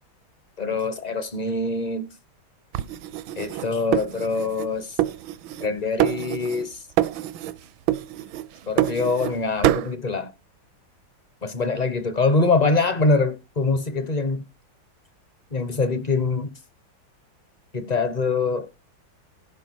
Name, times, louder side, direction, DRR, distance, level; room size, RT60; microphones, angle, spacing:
voice 1, 0.6-2.1 3.3-5.0 5.6-6.9 8.7-10.3 11.4-14.4 15.5-16.5 17.7-18.7, left 3 dB, 40° left, 0.6 m, -24 dB
sound 1, 2.7-4.7 5.0-5.7 6.0-6.7 7.0-7.6 7.9-9.4 9.6-9.9, right 13 dB, 75° right, 1.4 m, -25 dB
15.5 x 5.8 x 4.6 m
omnidirectional pair, 2.2 m